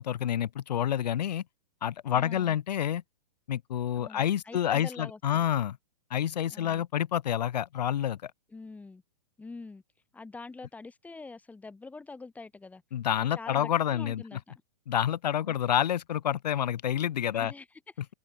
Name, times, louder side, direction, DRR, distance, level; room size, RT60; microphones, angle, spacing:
voice 1, 0.0-1.4 1.8-3.0 3.5-5.8 6.1-8.3 12.9-14.2 14.9-17.5, left 10 dB, 75° left, 1.5 m, -28 dB
voice 2, 2.1-2.6 3.9-5.5 6.5-6.8 8.5-9.0 9.4-9.8 10.1-12.8 13.2-14.5 15.5-15.6 17.3-17.7, left 3 dB, 5° left, 2.6 m, -45 dB
open air
hypercardioid pair, 140°, 21 cm